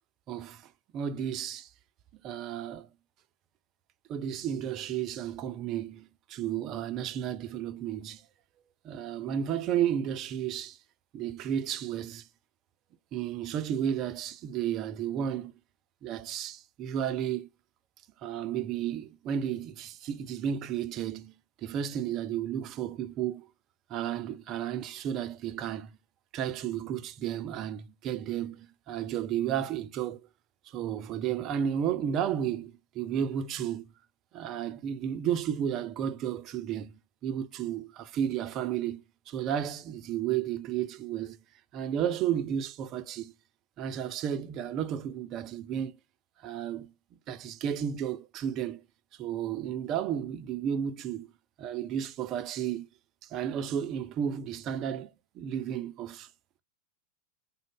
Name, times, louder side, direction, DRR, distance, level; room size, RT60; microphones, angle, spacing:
voice 1, 0.3-1.7 2.2-2.9 4.1-8.2 8.8-10.8 11.1-12.3 13.1-15.5 16.0-17.5 18.2-21.3 21.6-23.5 23.9-25.9 26.3-30.3 30.7-33.8 34.3-36.9 37.2-41.4 41.7-43.3 43.8-45.9 46.4-46.9 47.3-48.8 49.2-51.3 51.6-52.9 53.2-56.3, right 9 dB, 35° right, 0.4 m, -33 dB
3.6 x 2.1 x 3.5 m
figure-of-eight pair, 90°, 0 cm